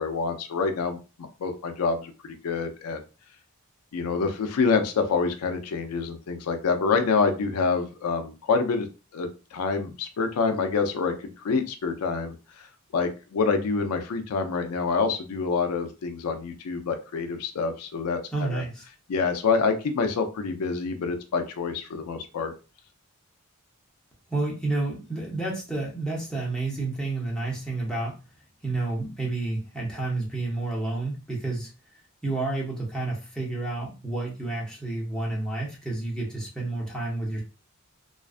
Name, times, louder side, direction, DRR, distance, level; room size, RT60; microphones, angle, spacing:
voice 1, 0.0-3.0 3.9-8.9 9.1-12.7 12.9-18.2 18.5-18.6 19.1-22.5, left 4 dB, 80° left, 7 dB, 0.4 m, -27 dB
voice 2, 18.3-18.8 24.3-28.2 28.6-31.7 32.2-37.4, right 2 dB, 5° left, -4 dB, 0.7 m, -30 dB
2.4 x 2.2 x 2.4 m, 0.33 s
head